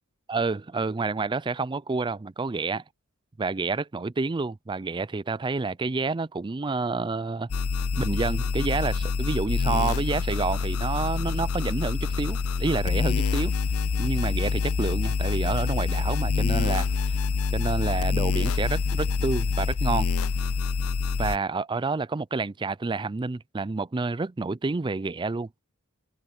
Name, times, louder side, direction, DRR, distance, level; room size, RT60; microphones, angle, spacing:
voice 1, 0.3-2.8 3.4-7.5 8.0-13.5 14.0-17.2 17.5-20.1 21.2-25.5, right 3 dB, 20° right, 0.4 m, -29 dB
sound 1, 7.5-21.4, left 5 dB, 80° left, 0.6 m, -26 dB
head